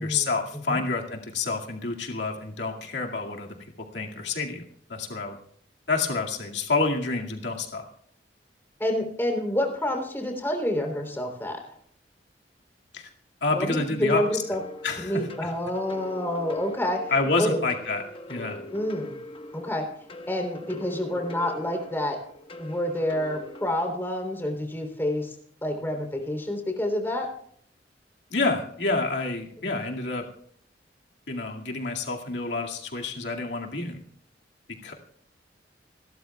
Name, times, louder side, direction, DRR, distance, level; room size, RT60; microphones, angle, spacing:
voice 1, 0.0-4.6 4.9-5.4 5.9-7.8 12.9-13.1 13.4-14.4 14.8-15.5 17.1-18.0 18.3-18.6 28.3-30.3 31.3-34.0 34.7-34.9, left 3 dB, 90° left, 0 dB, 2.2 m, -28 dB
voice 2, 8.8-11.6 13.5-14.6 15.0-17.1 17.4-17.6 18.7-19.1 19.5-19.9 20.3-22.2 22.6-25.3 25.6-27.3, left 1 dB, 15° left, 2 dB, 3.4 m, -28 dB
sound 1, 14.1-23.7, left 1 dB, 30° left, 1.3 m, -42 dB
28.0 x 13.0 x 2.3 m, 0.63 s
head